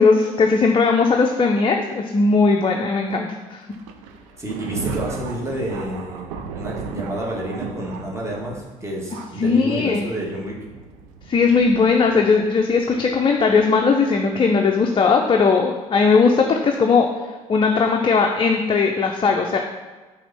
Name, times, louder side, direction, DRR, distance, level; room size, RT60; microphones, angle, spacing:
voice 1, 0.0-3.6 9.4-10.1 11.3-17.1 17.5-19.6, left 4 dB, 30° left, 2 dB, 0.6 m, -18 dB
Thunder, 3.7-13.6 14.4-14.5 15.5-15.7 16.4-16.6, right 5 dB, 65° right, 0.6 m, -36 dB
voice 2, 4.4-6.3 6.5-10.6, right 1 dB, 15° right, -3 dB, 1.8 m, -29 dB
5.9 x 3.5 x 5.6 m, 1.3 s
figure-of-eight pair, 45°, 18 cm